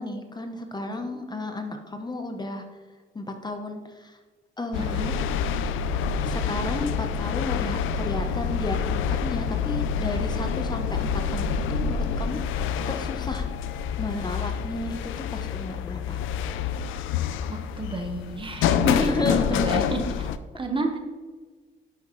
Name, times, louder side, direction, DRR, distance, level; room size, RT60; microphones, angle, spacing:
voice 1, 0.0-2.6 3.1-4.2 4.6-5.1 6.2-13.5 14.0-16.2 18.9-19.6, left 2 dB, 20° left, 5 dB, 0.9 m, -33 dB
sound 1, 4.7-20.4, left 7 dB, 85° left, 0.5 m, -27 dB
voice 2, 4.8-5.1 17.5-20.3 20.5-21.0, right 2 dB, 25° right, 4 dB, 1.3 m, -31 dB
11.0 x 6.3 x 3.1 m, 1.4 s
cardioid pair, 90°, 20 cm